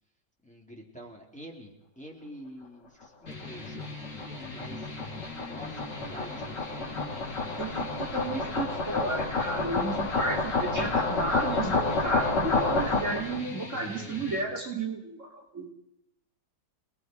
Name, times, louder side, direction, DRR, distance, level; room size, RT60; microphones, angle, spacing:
voice 1, 0.4-4.9 5.4-7.6, equal, 5° left, -2 dB, 3.6 m, -48 dB
sound 1, 3.3-14.4, left 2 dB, 50° left, 3.4 m, -41 dB
sound 2, 3.4-13.4, left 3 dB, 85° left, 2.7 m, -30 dB
voice 2, 7.6-15.7, right 2 dB, 45° right, -1 dB, 3.2 m, -33 dB
29.0 x 20.5 x 4.7 m, 0.83 s
omnidirectional pair, 1.8 m